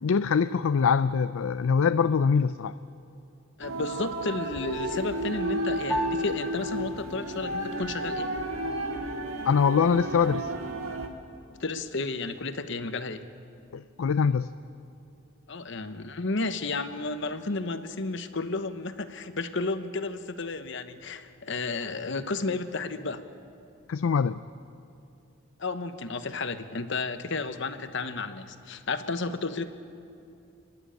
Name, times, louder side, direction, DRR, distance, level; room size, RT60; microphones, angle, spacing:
voice 1, 0.0-2.7 9.4-10.5 13.7-14.5 23.9-24.4, left 6 dB, 85° left, 12 dB, 0.4 m, -23 dB
voice 2, 3.6-8.3 11.6-13.2 15.5-23.2 25.6-29.7, left 3 dB, 60° left, 10 dB, 1.0 m, -32 dB
sound 1, 3.6-11.1, right 1 dB, 85° right, 1.9 m, -32 dB
Piano, 5.9-15.5, right 1 dB, ahead, 0.6 m, -42 dB
30.0 x 11.0 x 8.9 m, 2.6 s
head